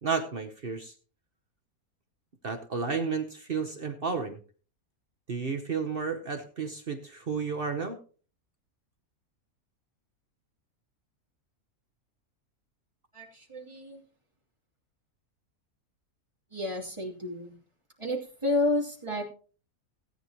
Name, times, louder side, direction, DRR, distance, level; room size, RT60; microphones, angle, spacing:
voice 1, 0.0-0.9 2.4-4.4 5.3-8.0, right 5 dB, 45° right, 6 dB, 1.0 m, -32 dB
voice 2, 13.1-14.0 16.5-17.6 18.0-19.3, left 2 dB, 20° right, -1 dB, 3.1 m, -31 dB
17.5 x 9.4 x 2.9 m, 0.38 s
omnidirectional pair, 1.5 m